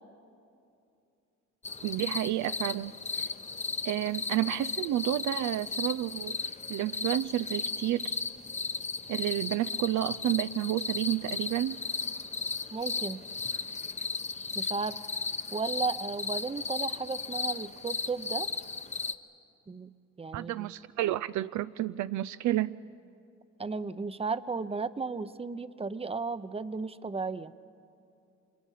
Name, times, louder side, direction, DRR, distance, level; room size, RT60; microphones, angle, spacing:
sound 1, 1.6-19.1, left 4 dB, 25° left, 0.9 m, -35 dB
voice 1, 1.8-3.3 3.8-6.4 6.7-8.2 9.1-11.8 20.3-22.7, right 14 dB, 70° right, 14 dB, 0.5 m, -30 dB
voice 2, 12.7-13.2 14.5-15.0 15.5-18.5 19.7-19.9 20.2-20.7 23.6-27.5, right 4 dB, 20° right, 14 dB, 0.7 m, -34 dB
30.0 x 25.0 x 5.7 m, 2.6 s
cardioid pair, 90°, 30 cm